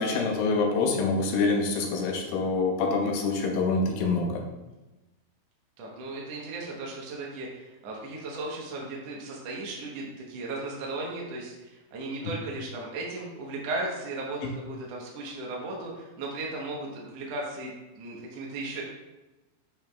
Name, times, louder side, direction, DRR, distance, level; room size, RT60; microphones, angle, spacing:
voice 1, 0.0-4.4 12.2-12.3, left 3 dB, 80° left, 1 dB, 2.2 m, -26 dB
voice 2, 5.8-18.8, right 2 dB, 80° right, -2 dB, 1.4 m, -36 dB
8.9 x 5.6 x 2.3 m, 1.1 s
omnidirectional pair, 4.5 m